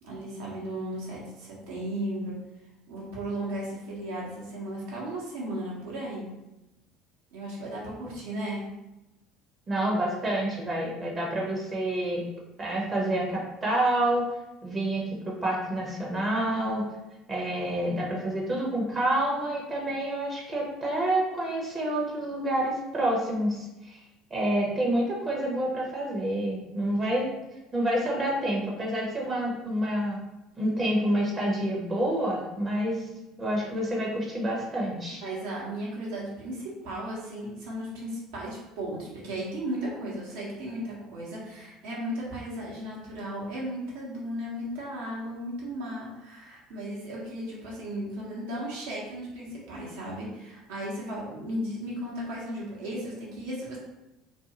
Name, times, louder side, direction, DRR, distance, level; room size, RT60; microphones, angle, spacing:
voice 1, 0.0-2.3 2.9-6.3 7.3-8.6 35.2-53.8, right 1 dB, 70° right, -5 dB, 1.0 m, -35 dB
voice 2, 9.7-12.2 12.6-14.3 14.6-16.8 17.3-24.0 24.3-27.3 27.7-30.2 30.6-33.1 33.4-35.2, right 1 dB, 30° right, -3 dB, 0.8 m, -28 dB
2.6 x 2.2 x 2.9 m, 0.98 s
hypercardioid pair, 65°, 0 cm